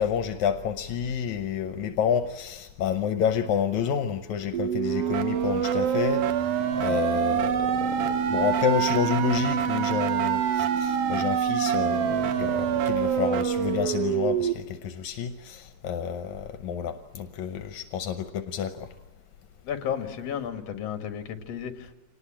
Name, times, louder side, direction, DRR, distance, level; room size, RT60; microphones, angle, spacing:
voice 1, 0.0-18.9, left 8 dB, 80° left, 8 dB, 2.3 m, -29 dB
sound 1, 4.5-14.5, right 8 dB, 65° right, 1.8 m, -25 dB
voice 2, 19.6-21.9, left 8 dB, 60° left, 8 dB, 2.7 m, -33 dB
26.0 x 19.5 x 8.7 m, 1.1 s
omnidirectional pair, 3.3 m